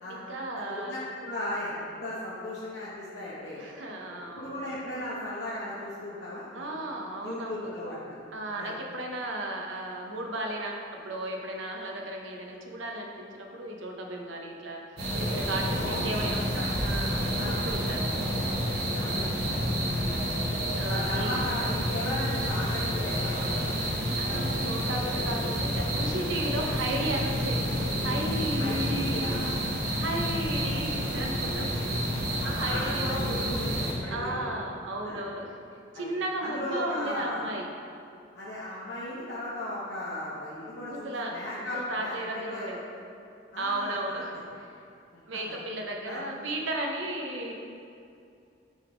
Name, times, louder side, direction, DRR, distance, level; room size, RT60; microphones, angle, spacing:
voice 1, 0.1-0.9 3.6-4.6 6.5-7.7 8.3-14.8 15.1-16.4 16.8-18.1 19.0-19.5 20.8-21.4 24.2-27.7 28.0-29.4 30.0-33.4 34.1-35.6 35.9-37.7 40.9-42.8 43.6-44.4 45.3-47.5, right 1 dB, 80° right, 0 dB, 0.8 m, -35 dB
voice 2, 0.7-3.6 4.2-6.7 7.2-8.2 8.6-8.7 15.8-16.7 17.3-17.6 18.4-18.5 18.9-19.2 20.1-20.3 20.9-23.7 28.6-29.6 30.6-30.7 32.4-34.4 35.0-35.2 35.9-36.0 36.4-37.4 38.3-42.8 43.5-44.4 46.1-46.2, left 1 dB, 60° left, -8 dB, 0.8 m, -36 dB
sound 1, 15.0-33.9, equal, 55° right, 1.3 m, -29 dB
6.3 x 3.6 x 4.8 m, 2.5 s
head